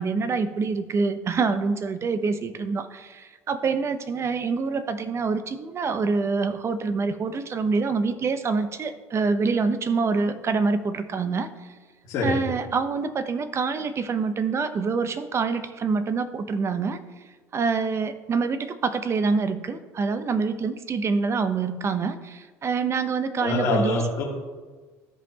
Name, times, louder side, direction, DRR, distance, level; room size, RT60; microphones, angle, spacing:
voice 1, 0.0-11.5 12.2-17.0 17.5-24.0, right 4 dB, 35° right, 11 dB, 0.8 m, -26 dB
voice 2, 12.1-12.4 23.4-24.2, left 2 dB, 55° left, -5 dB, 2.0 m, -25 dB
14.0 x 5.2 x 2.9 m, 1.4 s
hypercardioid pair, 75°, 8 cm